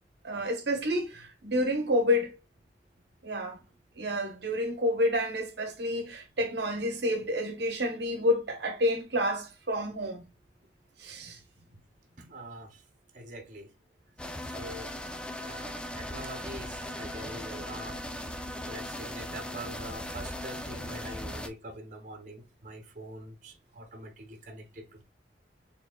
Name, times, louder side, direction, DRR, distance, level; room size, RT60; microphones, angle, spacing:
voice 1, 0.2-2.4 3.2-3.6 4.0-10.2 11.0-11.4, left 1 dB, 70° right, 0.9 m, -29 dB
voice 2, 12.2-12.8 13.1-13.7 14.4-14.9 15.4-18.0 18.3-25.0, right 1 dB, 45° right, 1.0 m, -44 dB
sound 1, 14.2-21.5, left 1 dB, 5° left, 0.3 m, -38 dB
4.4 x 3.5 x 2.2 m
head